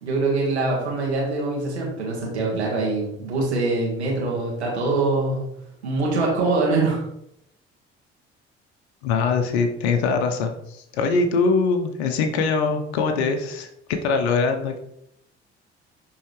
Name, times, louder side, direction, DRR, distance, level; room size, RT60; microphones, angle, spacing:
voice 1, 0.0-5.5 5.8-7.0, right 3 dB, 90° right, -3 dB, 1.8 m, -23 dB
voice 2, 9.0-13.7 14.0-14.8, left 4 dB, 75° left, 5 dB, 0.9 m, -22 dB
11.0 x 3.8 x 3.2 m, 0.76 s
hypercardioid pair, 50°, 32 cm